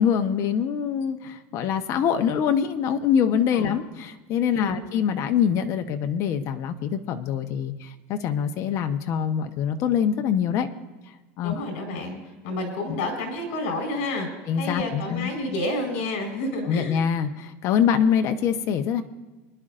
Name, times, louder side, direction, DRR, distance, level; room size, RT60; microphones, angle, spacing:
voice 1, 0.0-10.7 11.4-11.6 14.5-15.3 16.7-19.0, left 8 dB, 45° left, 7 dB, 1.0 m, -24 dB
voice 2, 11.4-12.2 12.4-14.3 14.6-17.0, left 2 dB, 75° left, 1 dB, 4.4 m, -29 dB
24.5 x 11.0 x 2.6 m, 1.2 s
supercardioid pair, 140°, 7 cm